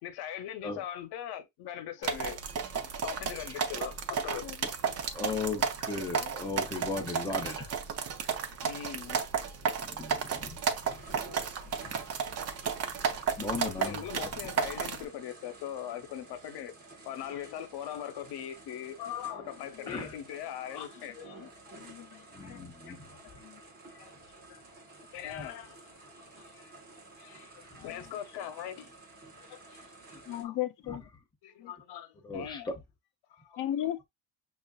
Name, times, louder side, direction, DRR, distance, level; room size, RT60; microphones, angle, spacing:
voice 1, 0.0-2.4 2.7-4.5 8.6-9.2 13.8-16.7 17.0-21.8 22.1-22.3 22.9-23.0 23.2-23.4 23.9-24.1 24.5-24.6 25.1-26.7 27.2-28.9 29.4-30.6 30.9-31.0 31.4-32.7 33.3-33.6, left 10 dB, 80° left, 0.9 m, -41 dB
sound 1, 2.0-15.0, right 6 dB, 40° right, 0.5 m, -33 dB
voice 2, 5.1-7.7 9.8-10.6 10.9-11.0 11.8-11.9 13.4-14.0 19.9-20.1 22.3-23.1 27.7-27.9 30.9-31.0 32.2-32.7, left 3 dB, 10° left, 0.6 m, -36 dB
sound 2, 10.8-30.4, right 2 dB, 25° right, 0.9 m, -52 dB
voice 3, 21.8-22.6 23.4-23.6 30.3-31.0 31.6-31.7 33.6-34.1, left 12 dB, 55° left, 0.5 m, -36 dB
6.1 x 2.5 x 2.2 m
cardioid pair, 175°, 39 cm